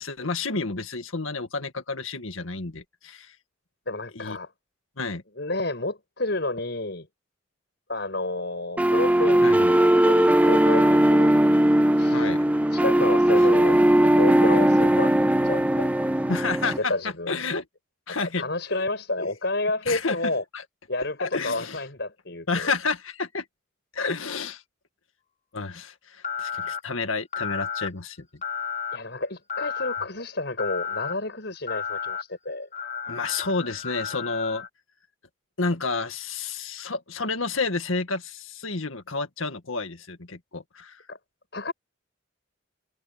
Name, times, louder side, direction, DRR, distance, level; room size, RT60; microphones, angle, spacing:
voice 1, 0.0-3.3 4.1-4.4 5.0-5.2 9.4-9.7 12.1-12.4 13.4-13.5 16.3-16.9 17.3-17.7 18.1-18.8 19.2-19.3 19.9-20.2 20.5-20.6 21.0-21.8 22.5-23.5 23.9-24.6 25.5-28.3 33.0-34.7 35.6-41.0, left 4 dB, 90° left, 2.0 m, -30 dB
voice 2, 3.9-4.5 5.4-7.1 7.9-11.4 12.0-12.3 12.7-15.2 15.4-15.9 16.6-17.4 18.1-20.4 20.9-22.7 28.9-32.7 41.1-41.2 41.5-41.7, left 2 dB, 55° left, 6.9 m, -30 dB
sound 1, 8.8-16.8, right 1 dB, 5° right, 0.5 m, -19 dB
sound 2, 26.2-26.8 27.3-27.9 28.4-29.0 29.5-30.1 30.6-31.1 31.7-32.2 32.7-34.7, left 7 dB, 40° left, 3.1 m, -32 dB
head